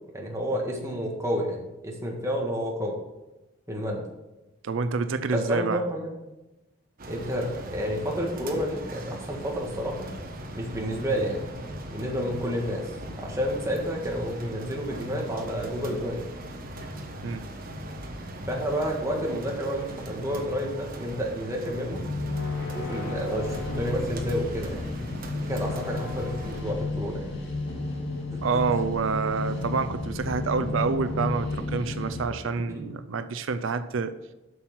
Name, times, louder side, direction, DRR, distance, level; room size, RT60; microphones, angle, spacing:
voice 1, 0.1-3.0 3.7-4.0 5.3-6.1 7.1-10.1 10.5-11.5 11.9-12.9 13.2-16.2 18.5-22.0 22.6-25.0 25.3-27.3 28.3-28.4 32.7-33.0, equal, 15° right, 0 dB, 1.7 m, -30 dB
voice 2, 4.6-5.8 17.2-17.4 28.4-34.1, right 5 dB, 85° right, 11 dB, 0.5 m, -28 dB
sound 1, 7.0-26.6, right 1 dB, 50° right, 1.2 m, -39 dB
sound 2, 16.6-17.9 21.8-32.2, left 3 dB, 55° left, 2.7 m, -32 dB
8.0 x 6.1 x 5.9 m, 1.0 s
head